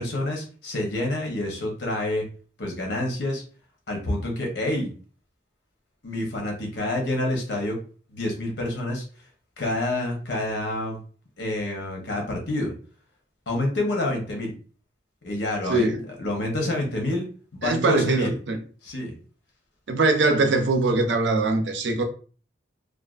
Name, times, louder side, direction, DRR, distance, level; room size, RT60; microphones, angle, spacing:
voice 1, 0.0-2.3 2.6-3.4 3.9-4.9 6.0-7.8 8.1-9.0 9.6-11.0 11.4-12.7 13.5-14.5 15.2-15.9 16.2-17.2 17.5-18.3 18.8-19.1, left 1 dB, 70° left, 0.8 m, -27 dB
voice 2, 15.7-16.1 17.6-18.6 19.9-22.0, right 3 dB, 75° right, 0.5 m, -22 dB
2.4 x 2.3 x 2.4 m
head